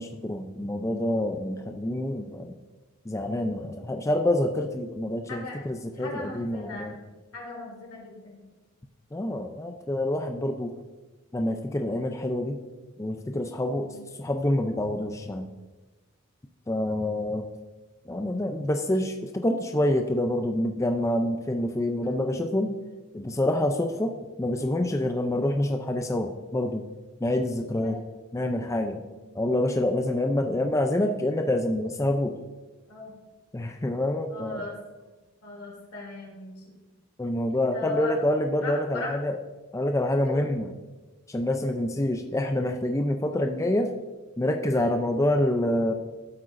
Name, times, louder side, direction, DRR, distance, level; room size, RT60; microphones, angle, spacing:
voice 1, 0.0-2.6 3.1-6.9 9.1-10.7 11.3-12.6 13.0-13.9 14.2-15.5 16.7-17.4 18.1-22.7 23.1-26.9 27.2-28.0 28.3-29.0 29.4-32.4 33.5-34.7 37.2-39.3 39.7-40.7 41.3-43.9 44.4-45.9, left 1 dB, 15° left, 5 dB, 0.4 m, -27 dB
voice 2, 6.0-7.0 7.3-8.4 13.8-14.0 22.0-22.4 27.8-27.9 28.9-29.2 32.9-33.2 34.3-34.7 35.4-36.8 37.5-38.1 38.6-39.1 40.2-40.4 43.3-43.4 44.7-44.9, left 3 dB, 90° left, -3 dB, 2.9 m, -39 dB
13.0 x 7.9 x 2.6 m, 1.2 s
head